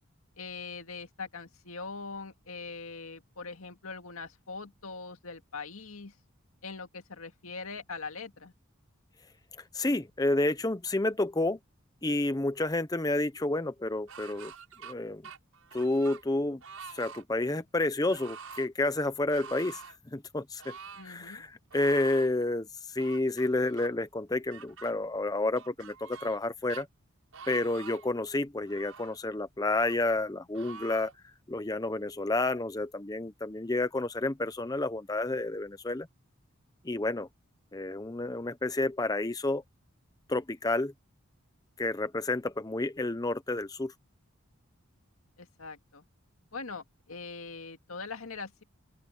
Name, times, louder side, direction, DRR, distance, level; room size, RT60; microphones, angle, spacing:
voice 1, 0.4-6.1 6.6-8.5 21.0-21.4 45.4-46.0 46.5-48.6, left 4 dB, 85° left, 2.1 m, -42 dB
voice 2, 9.7-11.6 12.0-14.5 14.8-15.2 15.7-16.6 16.9-19.8 20.1-20.7 21.0-26.9 27.5-31.1 31.5-36.1 36.8-37.3 37.7-39.6 40.3-40.9 41.8-43.9, left 2 dB, 15° left, 0.6 m, -30 dB
sound 1, 14.1-14.9 15.2-16.2 16.6-17.2 18.1-18.7 19.3-20.0 20.6-21.1 21.7-22.3 23.0-23.9 24.5-24.9 25.6-26.4 26.7-26.8 27.3-28.1 28.7-29.2 29.8-30.0 30.5-31.1, right 6 dB, 85° right, 7.0 m, -46 dB
open air
head